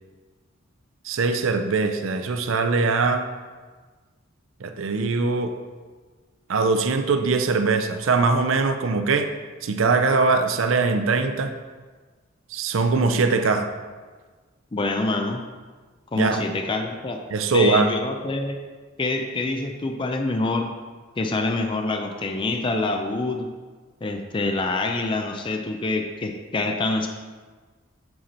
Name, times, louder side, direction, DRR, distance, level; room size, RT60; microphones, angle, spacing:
voice 1, 1.0-3.3 4.6-5.5 6.5-9.3 9.6-11.5 12.5-13.7 16.2-16.4 17.3-17.9, right 4 dB, 75° right, 7 dB, 0.5 m, -21 dB
voice 2, 14.7-15.4 16.1-17.2 17.5-18.6 19.0-20.7 21.2-23.5 24.0-27.1, left 2 dB, 25° left, 4 dB, 0.4 m, -26 dB
7.6 x 4.4 x 4.2 m, 1.4 s
head